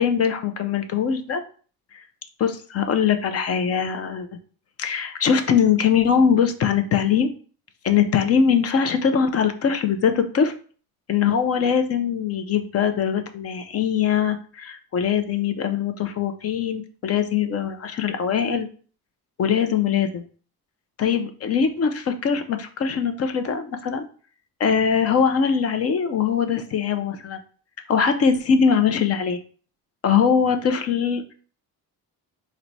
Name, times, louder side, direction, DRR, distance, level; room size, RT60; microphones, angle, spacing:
voice 1, 0.0-1.4 2.4-4.3 4.8-7.3 7.8-10.5 11.1-18.7 19.4-20.3 21.0-24.0 24.6-27.4 27.9-29.4 30.0-31.3, left 7 dB, 40° left, 8 dB, 0.4 m, -22 dB
4.5 x 2.1 x 3.9 m, 0.42 s
cardioid pair, 150°, 39 cm